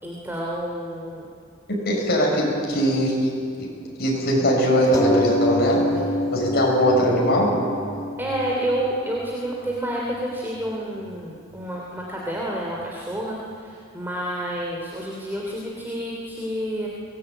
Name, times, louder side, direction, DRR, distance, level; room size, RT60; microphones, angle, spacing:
voice 1, 0.0-1.3 8.2-16.9, right 1 dB, 10° right, -3 dB, 2.9 m, -29 dB
voice 2, 1.7-3.3 4.0-5.9 6.3-7.6, equal, 55° left, -2 dB, 7.2 m, -20 dB
sound 1, 4.9-9.9 10.7-10.8 11.1-11.2, left 1 dB, 15° left, 1.6 m, -27 dB
23.0 x 19.5 x 9.0 m, 2.4 s
head